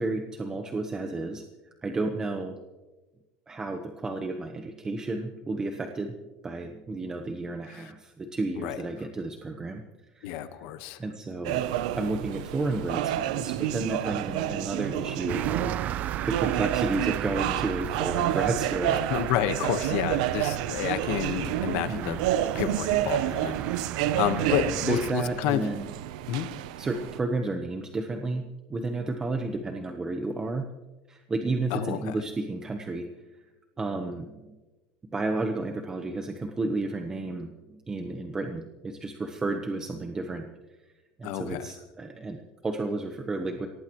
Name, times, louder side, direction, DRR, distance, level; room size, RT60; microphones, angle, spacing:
voice 1, 0.0-1.5 1.8-2.6 3.5-9.8 10.1-10.4 11.0-15.8 16.3-19.1 21.9-22.2 24.4-25.9 26.8-30.7 31.1-33.1 33.8-34.6 35.1-40.5 41.2-43.7, right 2 dB, 15° right, 5 dB, 1.0 m, -32 dB
voice 2, 10.2-11.0 19.1-22.2 22.5-23.6 24.2-25.6 26.3-26.5 31.7-32.2 41.2-41.7, left 12 dB, 70° left, 10 dB, 1.3 m, -29 dB
sound 1, 11.4-27.2, right 13 dB, 90° right, 0.7 m, -30 dB
sound 2, 15.3-25.1, right 11 dB, 40° right, 0.4 m, -35 dB
23.0 x 18.0 x 3.1 m, 1.2 s
cardioid pair, 145°, 4 cm